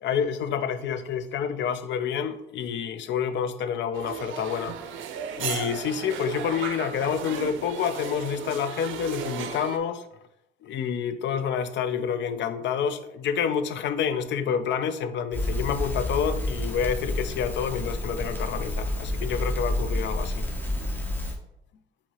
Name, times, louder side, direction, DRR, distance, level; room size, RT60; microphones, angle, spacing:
voice 1, 0.0-4.8 5.4-10.0 10.6-20.4, left 7 dB, 65° left, 0.4 m, -28 dB
sound 1, 3.9-9.8, right 7 dB, 80° right, 0.5 m, -35 dB
Crackle, 15.3-21.4, left 1 dB, 10° left, 0.7 m, -29 dB
4.5 x 2.8 x 2.9 m
cardioid pair, 90°, 20 cm